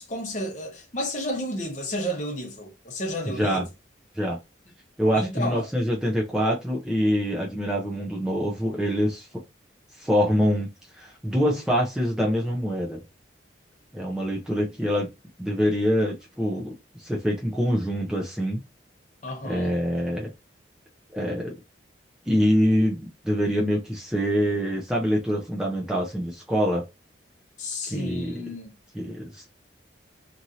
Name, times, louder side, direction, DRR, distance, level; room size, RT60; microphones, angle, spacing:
voice 1, 0.0-3.7 5.1-5.7 19.2-19.8 27.6-28.7, left 1 dB, 40° left, 0.8 m, -32 dB
voice 2, 3.3-3.6 4.1-4.4 5.0-9.3 10.0-13.0 13.9-15.1 15.4-16.7 17.0-18.6 19.4-20.3 21.1-21.5 22.3-26.8 27.9-28.4 28.9-29.5, equal, 5° right, 0.4 m, -25 dB
3.0 x 2.5 x 2.7 m
head